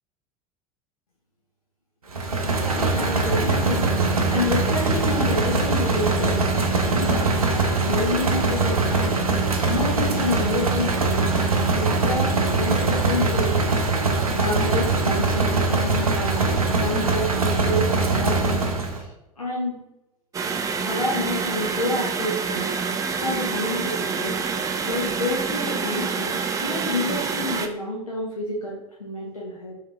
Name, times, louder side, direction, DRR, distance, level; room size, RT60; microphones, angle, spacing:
sound 1, 2.1-19.0, right 3 dB, 85° right, 0.5 m, -22 dB
voice 1, 3.0-6.4 6.9-9.2 9.7-11.3 11.7-13.6 14.4-19.1 19.4-19.8 20.8-22.7 23.2-24.4 24.8-29.7, left 2 dB, 90° left, -4 dB, 0.7 m, -29 dB
sound 2, 20.3-27.7, right 5 dB, 20° right, 0.4 m, -27 dB
3.2 x 3.2 x 3.3 m, 0.92 s
figure-of-eight pair, 80°, 18 cm